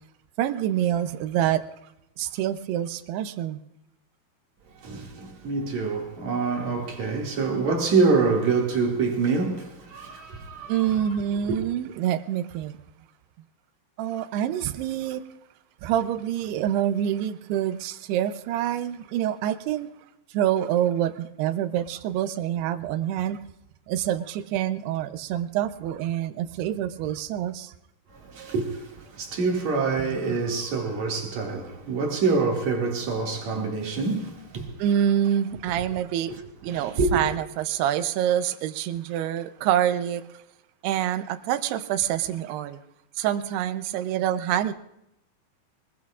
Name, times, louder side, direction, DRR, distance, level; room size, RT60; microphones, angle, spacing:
voice 1, 0.4-1.7 2.2-3.6 10.7-12.8 14.0-15.2 15.8-19.9 20.3-23.4 23.9-27.7 30.0-30.4 34.8-36.3 36.6-40.2 40.8-42.8 43.2-44.7, right 11 dB, 90° right, 2.8 m, -26 dB
voice 2, 4.8-11.0 11.5-11.6 28.1-34.8 36.3-36.4 36.7-37.2, right 4 dB, 50° right, 3.1 m, -26 dB
25.0 x 20.5 x 2.4 m
omnidirectional pair, 4.5 m